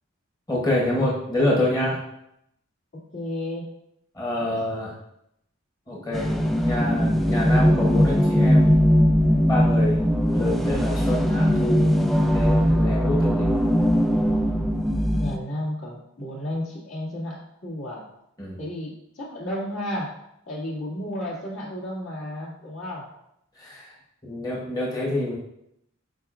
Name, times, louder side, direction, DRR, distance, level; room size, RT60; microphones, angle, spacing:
voice 1, 0.5-2.0 4.1-5.0 5.9-8.7 9.4-10.1 10.3-11.8 12.3-13.5 18.4-18.6 23.6-23.9 24.3-25.4, left 1 dB, 20° left, -3 dB, 1.0 m, -27 dB
voice 2, 2.9-3.7 4.4-4.6 15.2-18.0 18.6-20.1 20.5-23.1, left 1 dB, 70° left, -5 dB, 2.1 m, -33 dB
sound 1, 6.1-15.4, equal, ahead, 0.3 m, -20 dB
9.1 x 4.7 x 2.5 m, 0.78 s
head